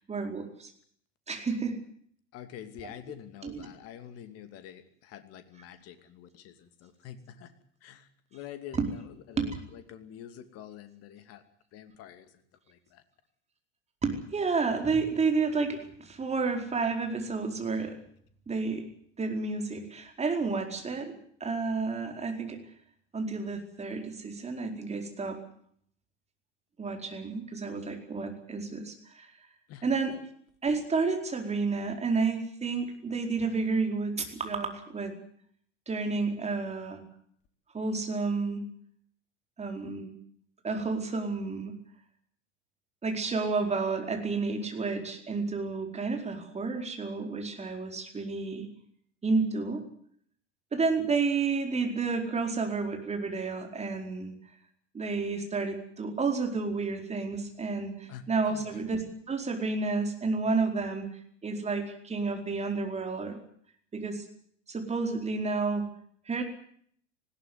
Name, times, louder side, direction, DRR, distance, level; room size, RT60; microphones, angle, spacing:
voice 1, 0.1-0.7 1.3-1.8 2.8-2.9 3.4-3.7 8.7-8.9 9.4-9.6 14.0-18.0 18.5-18.8 19.2-22.6 23.1-25.4 26.8-29.3 29.8-30.2 30.6-35.2 35.9-37.0 37.7-38.6 39.6-40.1 40.6-41.8 43.0-48.7 49.2-49.8 50.7-54.3 54.9-61.1 61.4-63.4 63.9-64.2 64.7-65.9 66.3-66.4, right 4 dB, 20° right, 4 dB, 4.7 m, -30 dB
voice 2, 2.3-7.5 7.8-8.8 9.3-11.4 11.7-12.2 12.7-13.0 29.7-29.8 58.1-58.8, left 10 dB, 40° left, 10 dB, 2.7 m, -47 dB
20.0 x 16.5 x 9.5 m, 0.62 s
figure-of-eight pair, 80°, 35 cm